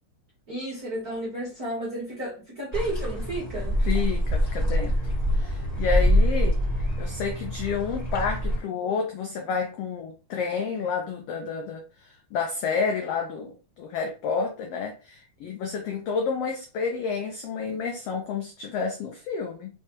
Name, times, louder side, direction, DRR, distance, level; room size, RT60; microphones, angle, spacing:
voice 1, 0.5-3.8, right 1 dB, 50° right, -5 dB, 1.1 m, -32 dB
sound 1, 2.7-8.6, equal, 25° left, 0.9 m, -25 dB
voice 2, 3.8-5.0 5.3-6.6 7.0-19.7, left 5 dB, 85° left, 2 dB, 1.4 m, -30 dB
4.6 x 3.2 x 2.9 m, 0.34 s
omnidirectional pair, 3.6 m